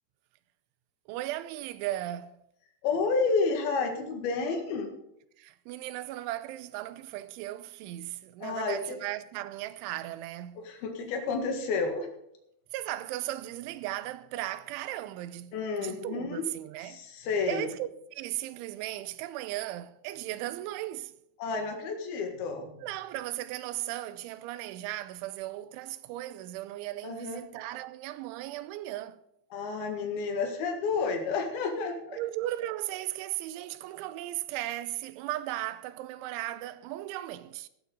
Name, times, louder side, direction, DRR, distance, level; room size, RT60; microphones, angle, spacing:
voice 1, 1.1-2.4 5.4-10.7 12.7-17.0 17.5-21.1 22.8-29.2 32.1-37.7, right 15 dB, 85° right, 3.0 m, -36 dB
voice 2, 2.8-4.9 8.4-9.0 10.6-12.1 15.5-16.5 16.8-17.7 21.4-22.7 27.0-27.4 29.5-32.2, left 4 dB, 60° left, 3.4 m, -30 dB
16.0 x 11.5 x 3.9 m
omnidirectional pair, 5.5 m